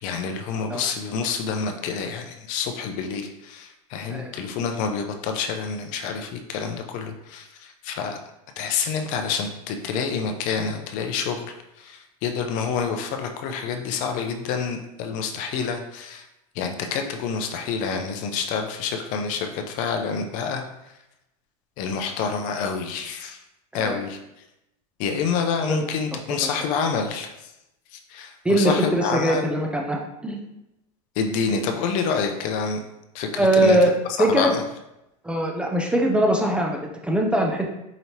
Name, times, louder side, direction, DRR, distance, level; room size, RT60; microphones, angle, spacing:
voice 1, 0.0-8.2 8.6-16.3 16.5-20.9 21.8-23.4 23.7-24.2 25.0-27.5 27.9-29.5 31.2-32.8 33.1-33.8 34.1-34.6, left 5 dB, 45° left, 5 dB, 0.5 m, -28 dB
voice 2, 28.4-30.4 33.4-33.9 34.2-34.5 35.2-37.7, right 1 dB, 5° right, 0 dB, 0.4 m, -21 dB
5.0 x 2.9 x 2.8 m, 0.89 s
supercardioid pair, 135°, 18 cm